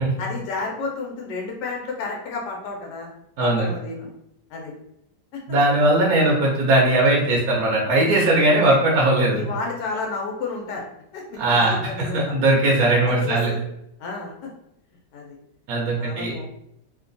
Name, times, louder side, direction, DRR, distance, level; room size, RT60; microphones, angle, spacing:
voice 1, 0.2-3.1 3.4-4.1 4.5-4.7 5.3-5.4 6.2-6.3 8.3-8.5 9.3-10.8 11.1-12.2 12.8-13.6 14.0-14.5 15.1-15.4 16.0-16.4, left 4 dB, 85° left, -1 dB, 1.2 m, -31 dB
voice 2, 5.5-9.4 11.4-13.5 15.7-16.3, right 2 dB, 70° right, -3 dB, 1.0 m, -19 dB
3.0 x 2.1 x 2.5 m, 0.79 s
omnidirectional pair, 1.8 m